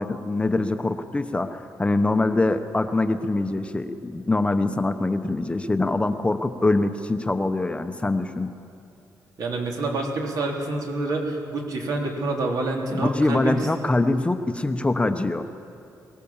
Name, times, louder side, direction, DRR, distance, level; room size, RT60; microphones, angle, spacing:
voice 1, 0.0-8.5 12.9-15.5, left 2 dB, 15° left, 8 dB, 0.9 m, -24 dB
voice 2, 9.4-13.6, right 2 dB, 70° right, 0 dB, 3.4 m, -27 dB
22.5 x 18.0 x 7.3 m, 2.7 s
cardioid pair, 110°, 7 cm